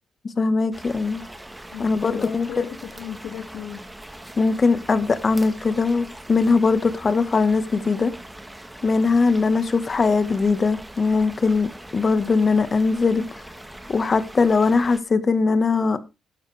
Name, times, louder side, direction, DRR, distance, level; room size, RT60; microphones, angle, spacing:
voice 1, 0.2-1.2 1.8-2.7 4.4-8.1 8.8-13.4 13.9-16.0, left 4 dB, 35° left, 1.4 m, -20 dB
sound 1, 0.7-15.0, right 1 dB, 10° right, 1.5 m, -41 dB
voice 2, 1.7-3.9, left 9 dB, 75° left, 2.1 m, -35 dB
12.5 x 11.5 x 3.4 m
cardioid pair, 90°, 0 cm